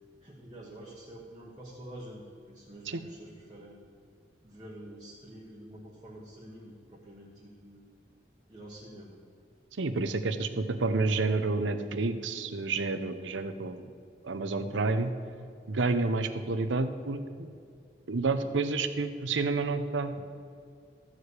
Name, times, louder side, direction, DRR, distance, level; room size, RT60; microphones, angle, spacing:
voice 1, 0.2-3.8 4.4-7.8 8.5-9.2 18.3-18.5, right 1 dB, 20° right, -5 dB, 1.2 m, -47 dB
voice 2, 9.8-13.9 14.2-15.1 15.7-17.5 18.1-20.3, right 3 dB, 85° right, 9 dB, 0.7 m, -29 dB
13.5 x 4.9 x 8.2 m, 2.4 s
head